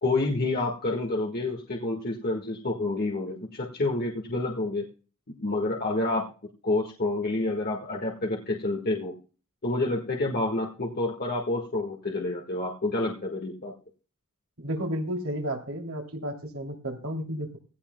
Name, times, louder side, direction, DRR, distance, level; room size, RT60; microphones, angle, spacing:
voice 1, 0.0-4.8 5.3-6.3 6.6-9.1 9.6-13.7, left 2 dB, 45° left, 0 dB, 1.7 m, -28 dB
voice 2, 14.6-17.6, equal, 75° right, 1 dB, 3.0 m, -32 dB
17.0 x 14.5 x 2.3 m, 0.37 s
head